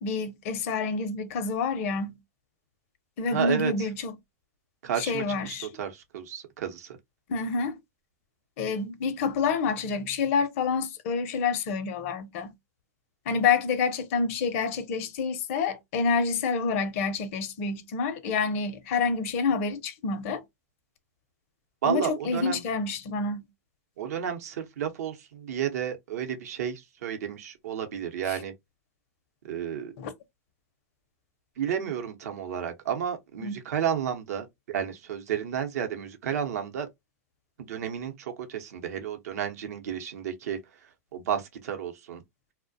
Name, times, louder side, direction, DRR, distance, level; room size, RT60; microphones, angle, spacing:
voice 1, 0.0-2.2 3.2-4.2 5.0-5.7 7.3-7.8 8.6-12.5 13.3-20.4 21.9-23.5 28.3-28.4 30.0-30.1 33.4-33.5, left 5 dB, 55° left, 0.5 m, -28 dB
voice 2, 3.3-3.9 4.8-5.2 5.8-7.0 21.8-22.6 24.0-28.5 29.4-29.9 31.6-36.9 37.6-40.6 41.1-42.2, right 9 dB, 70° right, 0.7 m, -32 dB
2.3 x 2.0 x 2.5 m
hypercardioid pair, 120°, 9 cm